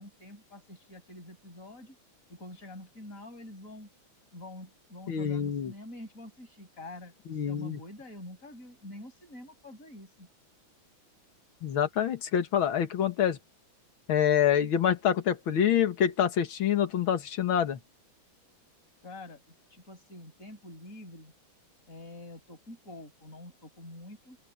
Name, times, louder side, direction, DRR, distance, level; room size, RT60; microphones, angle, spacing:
voice 1, 0.0-2.0 2.3-3.9 4.3-10.3 19.0-19.4 19.7-21.3 21.9-24.4, left 1 dB, 35° left, 6.6 m, -46 dB
voice 2, 5.1-5.7 7.3-7.8 11.6-13.4 14.1-17.8, left 9 dB, 70° left, 2.3 m, -26 dB
open air
omnidirectional pair, 2.3 m